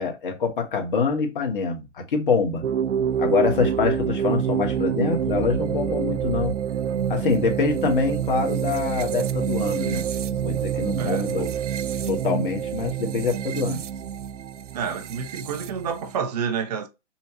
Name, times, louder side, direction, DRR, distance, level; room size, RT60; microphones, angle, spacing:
voice 1, 0.0-2.6 3.2-6.5 7.1-11.5 12.1-13.8, left 5 dB, 45° left, 1.4 m, -25 dB
sound 1, 2.6-16.2, right 8 dB, 80° right, 0.5 m, -27 dB
voice 2, 11.0-11.5 14.7-16.9, right 6 dB, 35° right, 0.6 m, -29 dB
5.6 x 2.3 x 2.8 m
figure-of-eight pair, 140°, 36 cm